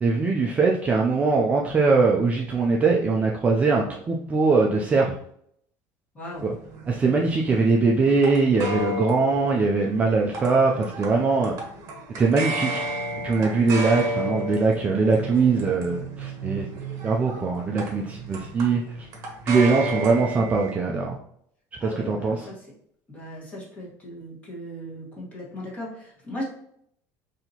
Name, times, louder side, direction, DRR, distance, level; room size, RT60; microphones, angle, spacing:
voice 1, 0.0-5.2 6.4-6.5 6.9-11.6 12.2-12.8 13.2-16.7 17.0-19.1 19.5-21.2 21.8-22.5, right 4 dB, 20° right, -1 dB, 0.3 m, -22 dB
voice 2, 6.1-6.4 7.0-7.2 7.5-7.6 13.6-13.8 21.8-22.7 23.1-26.4, left 1 dB, 20° left, -5 dB, 1.4 m, -38 dB
sound 1, 6.3-20.8, right 1 dB, 45° right, 1.0 m, -33 dB
4.1 x 2.8 x 2.8 m, 0.68 s
cardioid pair, 170°, 8 cm